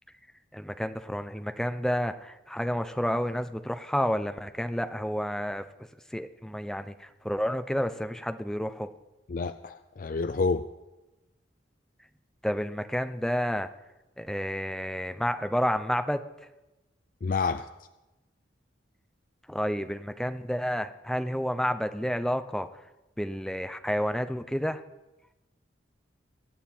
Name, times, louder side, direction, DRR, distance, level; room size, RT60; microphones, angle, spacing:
voice 1, 0.5-8.9 12.4-13.7 14.2-16.2 19.5-22.8 23.2-24.8, equal, 5° left, 9 dB, 0.6 m, -30 dB
voice 2, 9.3-10.7 17.2-17.7, left 4 dB, 50° left, 10 dB, 0.4 m, -28 dB
22.5 x 9.0 x 4.5 m, 1.0 s
head